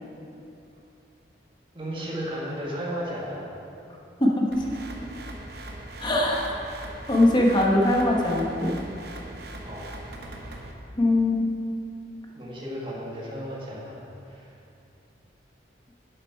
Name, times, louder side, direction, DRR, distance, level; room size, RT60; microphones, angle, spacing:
voice 1, 1.7-3.4 9.6-9.9 12.3-14.0 14.3-14.5, equal, 30° right, -4 dB, 1.6 m, -34 dB
voice 2, 4.2-4.6 6.0-6.5 7.1-8.8 11.0-11.5, left 1 dB, 25° left, -2 dB, 1.0 m, -21 dB
sound 1, 4.5-10.7, right 1 dB, 60° right, 0.9 m, -40 dB
7.7 x 7.6 x 4.6 m, 2.7 s
head